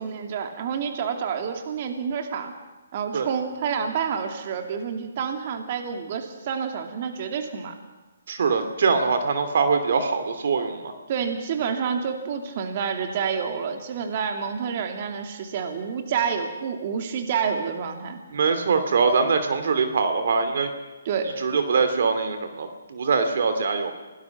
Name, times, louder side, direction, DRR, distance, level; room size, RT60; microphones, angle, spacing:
voice 1, 0.0-2.5 2.9-7.8 11.1-18.2 21.1-21.3, right 6 dB, 45° right, 4 dB, 2.7 m, -28 dB
voice 2, 8.3-10.9 18.3-20.7 21.4-23.9, right 5 dB, 60° right, 7 dB, 2.6 m, -23 dB
27.0 x 19.0 x 6.1 m, 1.2 s
hypercardioid pair, 145°, 0 cm